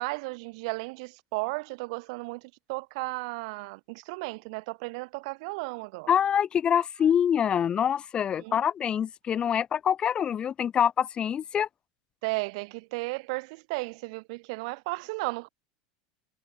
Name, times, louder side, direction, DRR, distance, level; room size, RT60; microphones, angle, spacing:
voice 1, 0.0-6.1 8.4-8.6 12.2-15.5, right 27 dB, 65° right, 3.8 m, -34 dB
voice 2, 6.1-11.7, left 8 dB, 25° left, 4.1 m, -25 dB
supercardioid pair, 140°, 4 cm